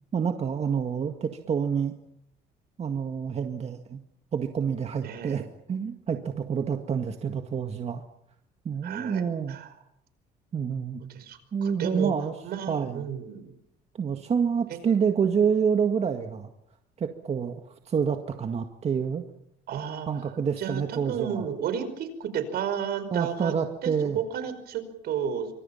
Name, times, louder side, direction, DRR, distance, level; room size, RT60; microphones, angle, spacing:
voice 1, 0.1-1.9 2.8-4.0 4.3-8.0 8.7-9.6 10.5-11.0 11.5-12.3 12.7-13.1 14.0-16.5 17.0-19.2 20.1-21.5 23.1-24.2, right 6 dB, 40° right, 5 dB, 1.9 m, -28 dB
voice 2, 5.0-5.4 8.8-9.7 11.1-12.1 12.4-13.5 19.7-23.5 23.8-25.5, right 8 dB, 70° right, 10 dB, 5.2 m, -32 dB
27.0 x 25.5 x 5.8 m, 0.77 s
cardioid pair, 110°, 17 cm